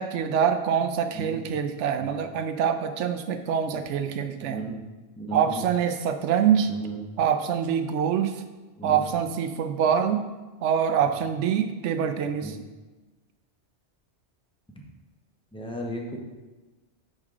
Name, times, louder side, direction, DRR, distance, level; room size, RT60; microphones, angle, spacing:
voice 1, 0.0-4.6 5.3-6.7 7.2-8.4 8.8-10.2 10.6-12.6, right 8 dB, 90° right, 8 dB, 0.9 m, -25 dB
voice 2, 4.4-4.8 5.2-5.6 6.6-7.0 8.8-9.0 12.4-12.6 15.5-16.2, right 2 dB, 5° left, -1 dB, 0.8 m, -35 dB
6.4 x 5.3 x 3.6 m, 1.2 s
omnidirectional pair, 1.2 m